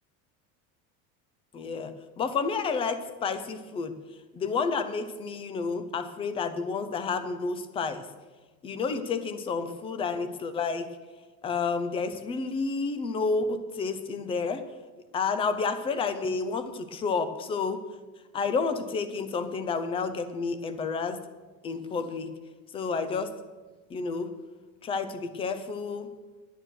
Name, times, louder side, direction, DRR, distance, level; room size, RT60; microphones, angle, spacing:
voice 1, 1.5-3.9 4.3-8.1 8.6-10.9 11.4-14.6 15.1-17.8 18.3-21.2 21.6-22.3 22.7-23.3 23.9-24.3 24.8-26.1, left 4 dB, 15° left, 11 dB, 0.4 m, -30 dB
11.0 x 8.9 x 6.3 m, 1.3 s
cardioid pair, 170°, 42 cm